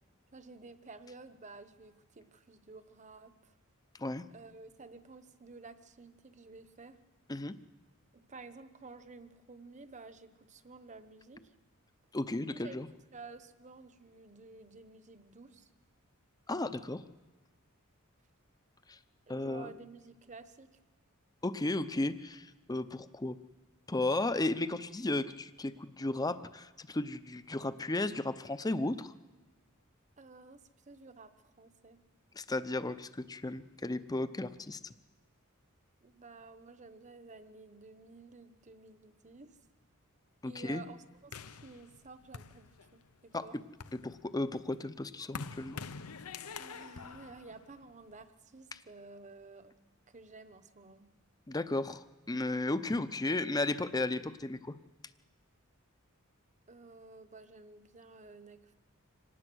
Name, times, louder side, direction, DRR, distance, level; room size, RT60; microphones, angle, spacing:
voice 1, 0.3-3.5 4.3-7.0 8.1-11.5 12.5-12.8 13.1-15.7 19.3-20.7 30.2-32.0 36.0-39.6 40.4-43.6 46.5-49.7 50.1-51.1 56.7-58.7, right 3 dB, 35° right, 11 dB, 1.1 m, -52 dB
voice 2, 12.1-12.9 16.5-17.0 18.9-19.0 19.3-19.7 21.4-23.4 23.9-29.1 32.4-34.8 40.4-40.8 43.3-43.4 43.9-45.8 51.5-54.7, left 2 dB, 15° left, 14 dB, 0.6 m, -34 dB
sound 1, 41.3-43.1 43.6-48.2, left 5 dB, 80° left, 0.8 m, -46 dB
25.5 x 19.0 x 6.2 m, 1.3 s
head